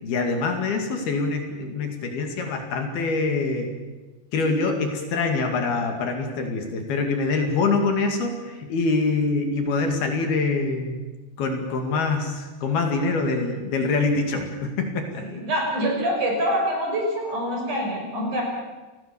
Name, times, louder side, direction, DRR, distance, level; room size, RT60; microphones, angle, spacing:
voice 1, 0.0-3.7 4.3-11.0 11.4-15.2, left 3 dB, 65° left, 4 dB, 4.2 m, -25 dB
voice 2, 15.2-18.4, equal, 45° right, 0 dB, 7.4 m, -25 dB
30.0 x 18.5 x 7.1 m, 1.2 s
omnidirectional pair, 5.0 m